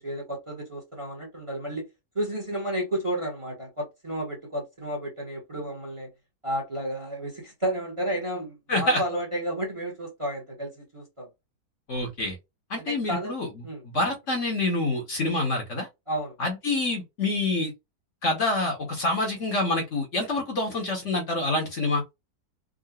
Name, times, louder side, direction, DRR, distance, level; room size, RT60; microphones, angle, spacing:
voice 1, 0.0-1.8 2.1-6.1 6.4-11.3 12.9-13.3 13.6-13.8 16.1-16.3, right 1 dB, 20° right, 1.1 m, -32 dB
voice 2, 8.7-9.0 11.9-12.4 12.7-13.5 13.8-15.9 16.4-17.7 18.2-22.0, left 2 dB, 50° left, 1.3 m, -26 dB
3.7 x 2.4 x 2.3 m
omnidirectional pair, 1.7 m